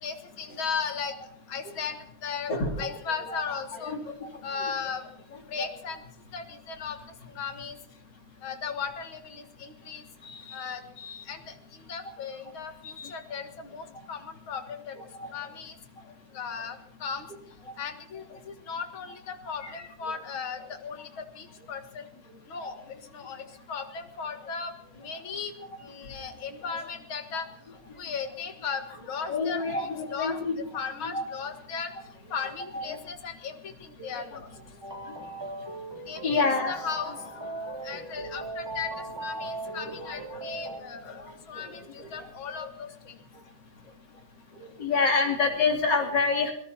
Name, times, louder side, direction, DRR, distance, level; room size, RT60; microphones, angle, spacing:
voice 1, 0.0-1.1 1.5-2.5 2.8-4.0 4.4-5.0 5.5-6.0 6.3-7.0 7.3-7.8 8.4-11.6 11.9-15.0 15.2-15.8 16.3-17.3 17.8-22.1 22.5-22.8 23.1-25.5 25.8-27.5 28.0-31.9 32.3-34.5 36.1-37.1 37.8-41.2 41.5-43.2, left 6 dB, 75° left, 6 dB, 2.4 m, -36 dB
voice 2, 2.5-2.9 3.3-3.6 3.8-4.0 4.5-4.6 19.6-19.8 29.3-30.5 31.0-31.2 32.7-33.0 36.2-36.9 37.4-37.8 39.8-40.3 41.1-41.2 42.6-42.7 44.8-46.5, left 4 dB, 55° left, 0 dB, 3.7 m, -27 dB
sound 1, 34.8-40.8, right 2 dB, 15° right, 1.2 m, -38 dB
25.0 x 18.5 x 2.9 m, 0.76 s
omnidirectional pair, 2.2 m